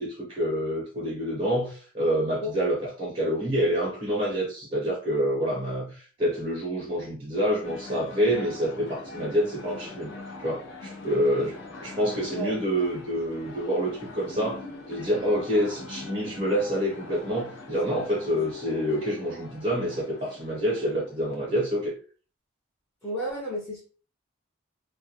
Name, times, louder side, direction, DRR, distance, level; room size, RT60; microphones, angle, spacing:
voice 1, 0.0-10.1 10.4-21.9, equal, 35° right, 0.7 m, -27 dB
sound 1, 7.6-21.5, left 2 dB, 70° left, 0.6 m, -42 dB
voice 2, 23.0-23.8, equal, 15° left, 0.6 m, -31 dB
2.2 x 2.1 x 2.7 m
head